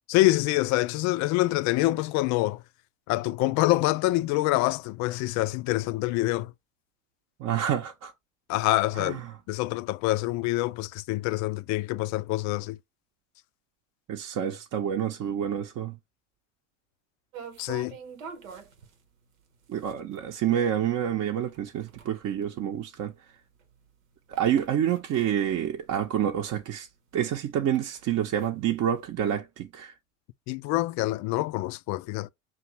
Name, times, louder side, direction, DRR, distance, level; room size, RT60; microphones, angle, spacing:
voice 1, 0.1-2.6 3.1-6.5 8.5-9.2 9.5-12.8 17.6-18.0 30.5-32.3, left 18 dB, 50° left, 0.4 m, -26 dB
voice 2, 7.4-8.1 8.9-9.3 14.1-16.0 19.7-23.1 24.3-26.9 27.1-29.9, right 10 dB, 40° right, 0.8 m, -28 dB
sound 1, 17.3-26.5 26.8-26.9 27.3-29.1, right 6 dB, 85° right, 1.0 m, -47 dB
5.8 x 2.6 x 3.0 m
hypercardioid pair, 70°, 39 cm